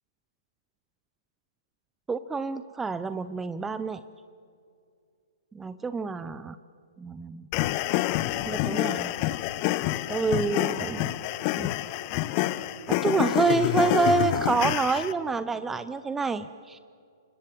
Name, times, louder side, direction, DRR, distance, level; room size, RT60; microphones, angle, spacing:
voice 1, 2.1-4.0 5.5-6.6 7.0-7.4 8.4-9.1 10.1-11.2 11.6-11.7 13.0-16.8, right 4 dB, 10° right, 13 dB, 0.6 m, -27 dB
sound 1, 7.5-15.1, left 16 dB, 30° left, 0.8 m, -27 dB
28.5 x 25.5 x 7.8 m, 2.4 s
figure-of-eight pair, 120°, 2 cm